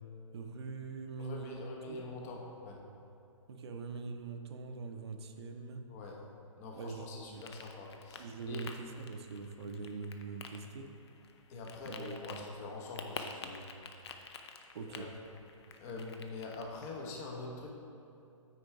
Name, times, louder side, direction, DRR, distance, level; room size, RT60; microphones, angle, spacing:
voice 1, 0.3-2.0 3.5-5.8 6.7-7.4 8.2-10.9 11.8-12.5 14.7-15.1, right 4 dB, 50° right, 6 dB, 0.7 m, -43 dB
voice 2, 1.2-2.8 5.9-6.2 6.6-8.6 11.5-13.6 14.9-15.1 15.8-17.7, left 3 dB, 30° left, 0 dB, 1.0 m, -44 dB
sound 1, 7.3-17.1, left 5 dB, 50° left, 0.6 m, -50 dB
9.3 x 4.4 x 4.8 m, 2.7 s
hypercardioid pair, 150°, 17 cm